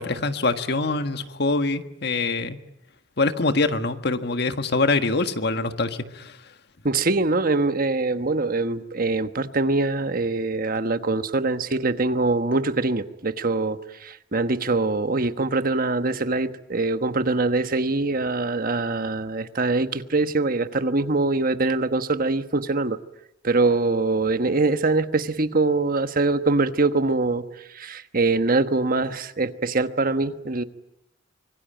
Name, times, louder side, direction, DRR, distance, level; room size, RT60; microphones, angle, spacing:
voice 1, 0.0-2.6 3.2-6.4, left 3 dB, 60° left, 8 dB, 1.6 m, -24 dB
voice 2, 6.8-23.0 23.4-27.4 27.7-30.6, right 3 dB, 50° right, 10 dB, 1.3 m, -23 dB
25.5 x 23.5 x 9.1 m, 0.82 s
head